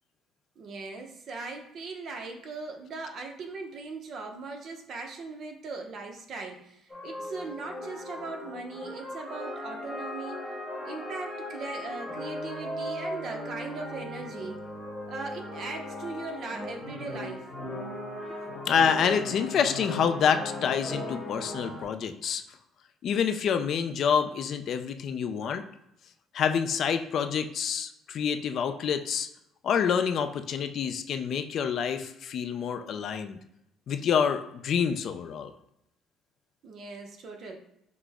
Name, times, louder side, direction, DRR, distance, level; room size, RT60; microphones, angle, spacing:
voice 1, 0.6-10.5 10.8-14.7 15.1-17.5 36.6-37.6, right 3 dB, 55° right, 3 dB, 0.7 m, -39 dB
sound 1, 6.9-21.8, left 1 dB, 5° left, 1.2 m, -38 dB
voice 2, 18.6-22.4 23.0-25.6 26.3-29.3 29.6-33.4 33.9-35.5, left 7 dB, 55° left, 9 dB, 0.4 m, -27 dB
6.0 x 2.1 x 3.5 m, 0.80 s
cardioid pair, 125°, 0 cm